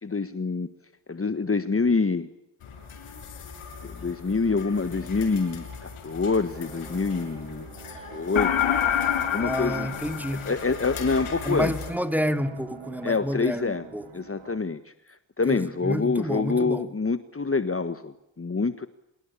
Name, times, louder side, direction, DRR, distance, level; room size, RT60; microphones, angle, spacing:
voice 1, 0.0-0.7 1.1-2.3 3.8-9.0 9.3-9.9 10.5-11.7 13.0-13.9 14.1-18.9, left 4 dB, 25° left, 1.5 m, -26 dB
sound 1, 2.6-11.9, left 5 dB, 90° left, 6.5 m, -40 dB
sound 2, 6.5-14.6, right 6 dB, 80° right, 5.2 m, -46 dB
sound 3, 8.4-11.0, left 9 dB, 70° left, 2.7 m, -26 dB
voice 2, 9.4-10.5 11.4-14.1 15.5-16.8, equal, 5° right, 2.5 m, -29 dB
26.0 x 21.5 x 8.6 m
cardioid pair, 65°, 49 cm